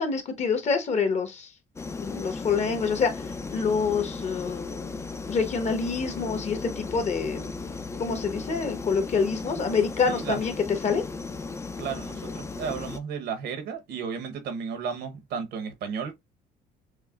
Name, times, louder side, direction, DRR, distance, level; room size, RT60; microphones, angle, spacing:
voice 1, 0.0-1.5 2.0-3.1 3.5-5.0 5.3-7.5 8.0-10.5 10.8-11.0, left 5 dB, 45° left, 1.1 m, -26 dB
sound 1, 1.8-13.0, left 4 dB, 15° left, 0.4 m, -36 dB
voice 2, 10.1-10.4 11.8-16.1, right 6 dB, 75° right, 1.0 m, -33 dB
6.3 x 2.2 x 2.4 m
cardioid pair, 110°, 17 cm